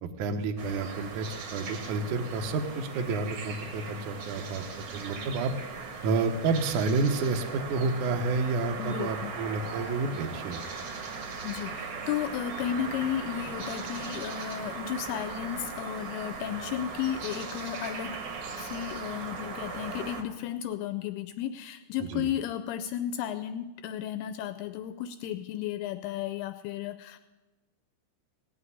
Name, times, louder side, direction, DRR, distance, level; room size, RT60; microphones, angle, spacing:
voice 1, 0.0-4.6 4.9-5.5 6.0-10.6 22.1-22.3, right 3 dB, 85° right, 5 dB, 1.7 m, -30 dB
sound 1, 0.6-20.2, right 4 dB, 60° right, 2.1 m, -38 dB
voice 2, 8.8-9.3 11.4-18.2 18.6-27.2, left 10 dB, 85° left, 9 dB, 2.3 m, -34 dB
17.5 x 6.4 x 9.7 m, 1.2 s
omnidirectional pair, 5.1 m